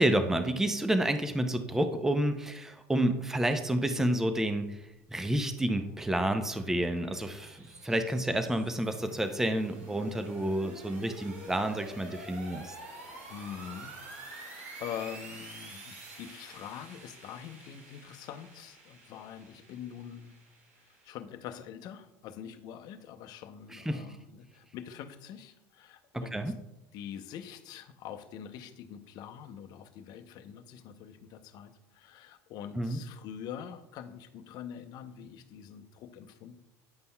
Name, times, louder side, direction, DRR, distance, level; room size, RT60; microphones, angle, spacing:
voice 1, 0.0-12.8 23.7-24.0 26.1-26.5 32.8-33.0, right 1 dB, 5° right, 8 dB, 0.5 m, -29 dB
sound 1, 5.1-21.1, right 2 dB, 85° right, 2.5 m, -49 dB
voice 2, 13.3-14.5 14.8-20.4 20.9-26.5 26.9-36.6, left 9 dB, 55° left, 8 dB, 0.6 m, -44 dB
9.6 x 5.3 x 2.2 m, 0.89 s
hypercardioid pair, 85°, 8 cm